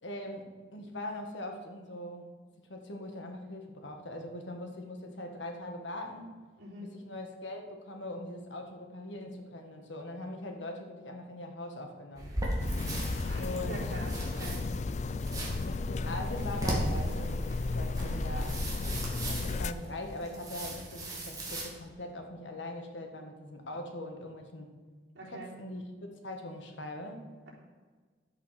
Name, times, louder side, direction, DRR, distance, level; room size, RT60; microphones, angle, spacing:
voice 1, 0.0-2.3 2.6-6.3 6.8-12.3 13.3-14.0 15.6-18.6 19.3-24.8 25.2-27.3, left 1 dB, 85° left, 3 dB, 1.7 m, -41 dB
sound 1, 12.1-21.7, right 1 dB, 20° right, 2.2 m, -37 dB
sound 2, 12.6-19.7, left 3 dB, 40° left, 0.3 m, -34 dB
voice 2, 13.2-14.6 25.1-25.5, right 1 dB, 70° right, -5 dB, 3.9 m, -44 dB
11.0 x 8.3 x 5.8 m, 1.4 s
head